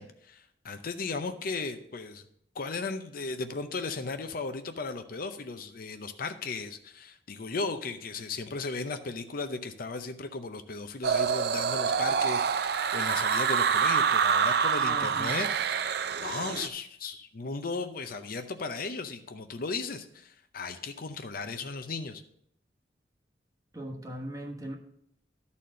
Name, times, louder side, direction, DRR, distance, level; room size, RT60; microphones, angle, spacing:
voice 1, 0.0-2.2 2.5-15.5 15.7-15.9 16.2-22.2, left 4 dB, 55° left, 8 dB, 0.7 m, -36 dB
sound 1, 11.0-16.7, right 6 dB, 65° right, 0.5 m, -26 dB
voice 2, 14.8-15.3 23.7-24.7, right 1 dB, 20° right, 1 dB, 1.3 m, -39 dB
12.0 x 4.2 x 6.3 m, 0.72 s
head